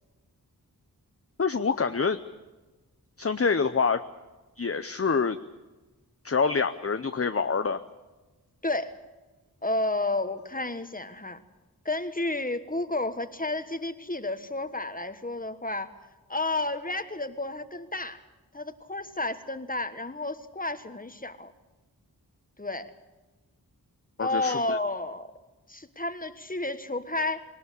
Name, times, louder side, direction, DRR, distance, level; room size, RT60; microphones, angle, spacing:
voice 1, 1.4-2.2 3.2-4.0 4.6-5.4 6.2-7.8 24.2-24.8, left 5 dB, 35° left, 9 dB, 0.7 m, -26 dB
voice 2, 8.6-9.0 9.6-11.4 11.8-15.9 16.3-18.2 18.5-21.5 22.6-22.9 24.2-25.3 25.7-27.4, left 2 dB, 20° left, 10 dB, 1.4 m, -31 dB
20.5 x 19.0 x 8.5 m, 1.2 s
wide cardioid pair, 50°, 38 cm